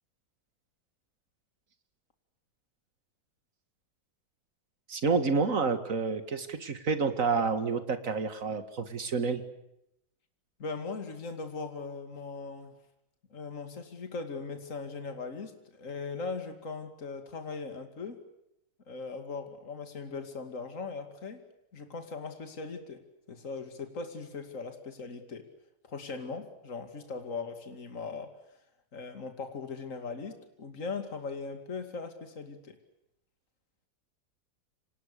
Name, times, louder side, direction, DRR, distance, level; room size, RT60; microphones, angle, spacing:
voice 1, 4.9-9.4, right 4 dB, 55° right, 9 dB, 2.4 m, -29 dB
voice 2, 10.6-12.7 13.3-18.2 18.9-21.4 21.7-23.0 23.3-25.5 25.8-28.3 28.9-32.8, left 4 dB, 50° left, 7 dB, 2.8 m, -39 dB
29.5 x 26.0 x 6.8 m, 0.83 s
omnidirectional pair, 1.7 m